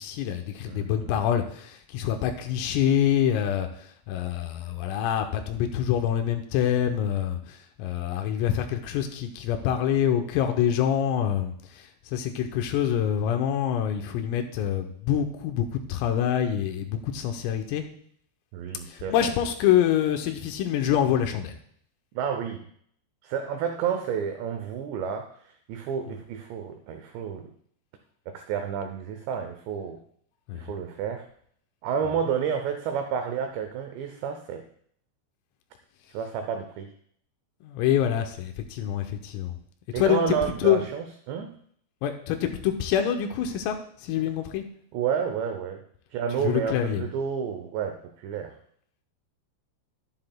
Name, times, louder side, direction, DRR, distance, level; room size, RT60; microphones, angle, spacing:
voice 1, 0.0-3.7 4.1-17.8 18.9-21.6 30.5-30.6 37.6-39.6 40.0-40.8 42.0-43.8 44.0-44.6 46.4-47.0, left 10 dB, 85° left, 5 dB, 3.5 m, -26 dB
voice 2, 0.7-1.2 18.5-19.3 22.1-22.6 23.2-27.5 28.3-30.0 30.5-31.3 31.8-34.7 36.1-36.9 39.9-41.5 44.9-45.8 46.1-48.6, right 7 dB, 90° right, 6 dB, 2.4 m, -30 dB
12.0 x 11.5 x 2.3 m, 0.62 s
omnidirectional pair, 6.0 m